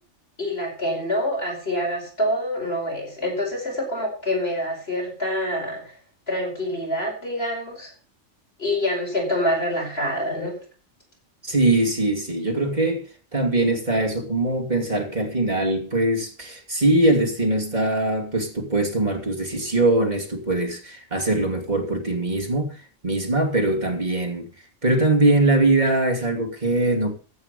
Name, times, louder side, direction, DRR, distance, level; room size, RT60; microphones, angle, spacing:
voice 1, 0.4-5.8 6.3-7.9 8.6-10.6, left 1 dB, 50° left, 5.3 m, -26 dB
voice 2, 11.4-13.1 13.3-22.8 23.0-24.5 24.8-27.2, right 2 dB, 35° right, 3.0 m, -22 dB
15.5 x 9.0 x 5.4 m
omnidirectional pair, 1.4 m